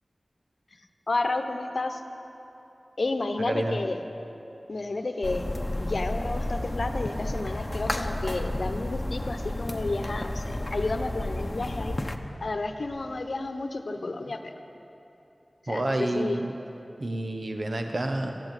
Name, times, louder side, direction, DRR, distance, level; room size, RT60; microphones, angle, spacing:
voice 1, 1.1-2.0 3.0-4.0 4.7-5.5 5.8-12.0 12.4-14.5 15.6-16.4, left 2 dB, 70° left, 6 dB, 1.0 m, -31 dB
voice 2, 3.5-3.8 15.7-16.5 17.0-18.3, right 1 dB, 60° right, 4 dB, 1.0 m, -29 dB
sound 1, 5.2-12.2, left 1 dB, 30° left, 1.0 m, -31 dB
15.0 x 10.5 x 9.0 m, 3.0 s
wide cardioid pair, 50°, 0 cm